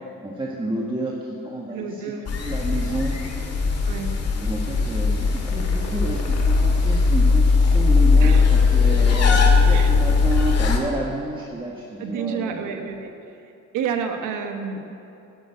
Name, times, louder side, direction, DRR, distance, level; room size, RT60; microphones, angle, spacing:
voice 1, 0.2-2.1 2.4-3.1 4.4-13.0, right 1 dB, 15° right, -3 dB, 1.5 m, -30 dB
voice 2, 1.7-2.3 3.8-4.1 8.2-8.4 9.7-9.9 12.0-13.1 13.7-14.8, right 6 dB, 90° right, 5 dB, 1.3 m, -29 dB
sound 1, 2.3-10.8, left 4 dB, 55° left, 2.1 m, -19 dB
11.0 x 9.2 x 7.9 m, 2.8 s
cardioid pair, 90°, 30 cm